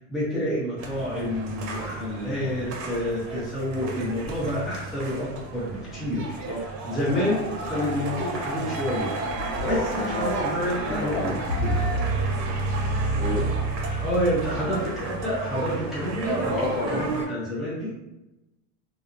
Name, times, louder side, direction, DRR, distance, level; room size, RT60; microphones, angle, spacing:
voice 1, 0.0-6.6 6.8-11.3 11.6-11.8 14.0-16.5 16.9-17.9, left 1 dB, ahead, -9 dB, 0.6 m, -29 dB
sound 1, 0.8-17.3, right 2 dB, 80° right, 0.8 m, -30 dB
voice 2, 9.5-10.5 10.8-11.3 13.1-13.5 16.5-17.0, left 1 dB, 35° left, -3 dB, 0.7 m, -29 dB
2.7 x 2.0 x 2.4 m, 0.95 s
supercardioid pair, 130°, 50 cm